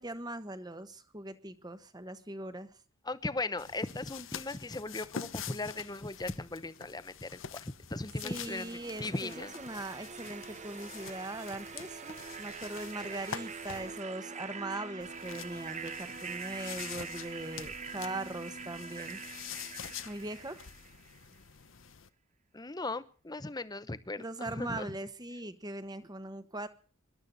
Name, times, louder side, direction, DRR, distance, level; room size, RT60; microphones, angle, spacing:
voice 1, 0.0-2.7 8.2-19.2 20.0-20.6 24.2-26.7, right 2 dB, 20° right, 11 dB, 1.3 m, -40 dB
voice 2, 3.0-9.5 18.0-18.2 22.5-24.9, left 2 dB, 20° left, 14 dB, 0.9 m, -38 dB
sound 1, 3.6-14.0 15.0-22.1, left 8 dB, 70° left, 1.0 m, -46 dB
sound 2, 8.3-21.2, right 6 dB, 35° right, 0.9 m, -44 dB
25.0 x 12.0 x 4.1 m, 0.41 s
head